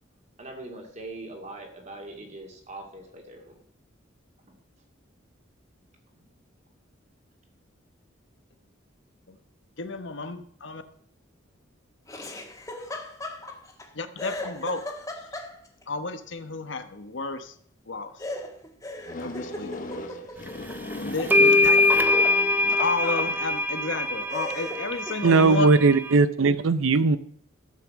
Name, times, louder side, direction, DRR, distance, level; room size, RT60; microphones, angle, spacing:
voice 1, 0.4-3.6 4.5-4.6 6.2-6.3, right 2 dB, 35° right, 2.6 m, -42 dB
voice 2, 9.8-10.8 13.9-14.8 15.9-17.5 17.9-18.1 19.2-19.7 21.0-21.8 22.8-25.7, left 3 dB, 65° left, 1.0 m, -31 dB
Laughter, 12.1-13.9 14.2-15.8 18.2-21.3 21.6-23.3 23.9-24.0 24.3-25.7, left 1 dB, 15° left, 1.7 m, -38 dB
sound 1, 19.1-23.1, left 1 dB, 45° left, 1.2 m, -38 dB
sound 2, 20.7-20.8 21.3-26.1, left 2 dB, 10° right, 0.6 m, -23 dB
voice 3, 25.2-27.2, right 4 dB, 85° right, 0.6 m, -19 dB
13.5 x 5.9 x 7.3 m
head